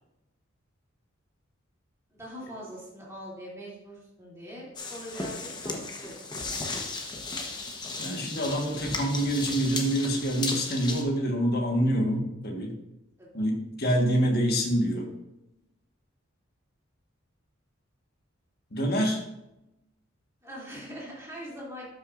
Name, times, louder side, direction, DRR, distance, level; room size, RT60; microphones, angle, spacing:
voice 1, 2.1-6.4 13.2-13.3 20.4-21.9, equal, 15° right, -6 dB, 2.6 m, -42 dB
sound 1, 4.8-11.0, left 3 dB, 20° left, 0.9 m, -35 dB
voice 2, 8.0-12.7 13.3-15.1 18.7-19.2, equal, 50° left, 1 dB, 1.4 m, -26 dB
12.5 x 5.9 x 2.5 m, 0.89 s
head